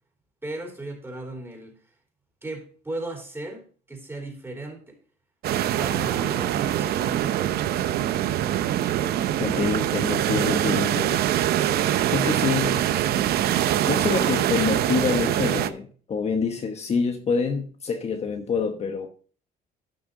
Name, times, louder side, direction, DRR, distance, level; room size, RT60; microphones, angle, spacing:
voice 1, 0.4-1.7 2.4-5.0 5.8-7.6, right 2 dB, 15° right, 3.9 m, -36 dB
sound 1, 5.4-15.7, right 12 dB, 70° right, 0.7 m, -24 dB
voice 2, 9.4-11.2 12.1-12.9 13.9-19.1, left 5 dB, 40° left, 1.1 m, -26 dB
12.5 x 6.0 x 3.8 m
cardioid pair, 110°, 17 cm